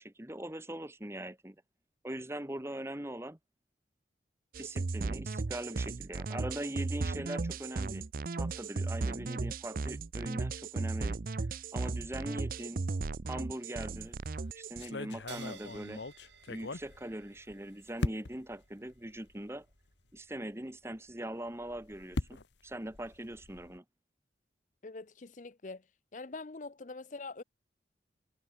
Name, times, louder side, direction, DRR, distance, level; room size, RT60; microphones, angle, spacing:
voice 1, 0.0-1.6 2.0-3.4 4.6-8.1 8.4-11.5 11.7-12.8 13.3-14.2 14.5-16.0 16.5-19.7 20.1-23.8, right 1 dB, 15° right, 1.3 m, -41 dB
sound 1, 4.5-14.9, right 3 dB, 50° right, 0.5 m, -36 dB
sound 2, 13.9-14.3 14.8-17.5 18.0-18.6 19.3-19.4 19.7-19.8 21.5-23.8, left 2 dB, 75° left, 1.1 m, -39 dB
sound 3, 15.3-22.3, right 10 dB, 70° right, 2.8 m, -58 dB
voice 2, 24.8-25.8 26.1-27.4, left 3 dB, 45° left, 0.6 m, -44 dB
head